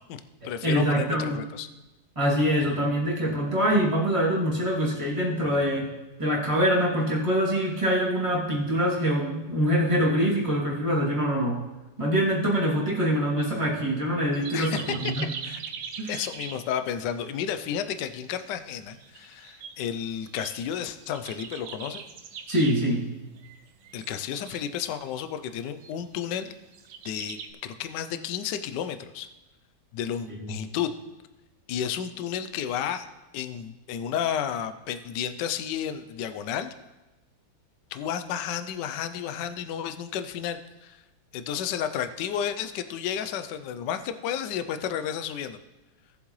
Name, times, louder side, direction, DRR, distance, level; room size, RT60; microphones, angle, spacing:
voice 1, 0.1-1.7 14.5-14.9 15.4-15.6 16.1-22.0 23.9-26.5 27.0-29.3 29.9-30.9 31.7-33.1 33.3-36.7 37.9-41.0 41.3-45.6, left 9 dB, 75° left, 10 dB, 1.2 m, -32 dB
voice 2, 0.6-1.4 2.2-5.9 6.2-11.6 12.0-15.3 16.0-16.1 22.5-23.0 30.3-30.5, equal, 15° right, -6 dB, 2.4 m, -24 dB
sound 1, 14.3-16.7 17.0-17.1 17.4-17.5 18.3-19.9 20.2-23.0 23.4-25.1 25.4-26.2 26.6-27.5, right 6 dB, 90° right, 1.6 m, -41 dB
17.0 x 7.4 x 3.1 m, 1.0 s
omnidirectional pair, 2.1 m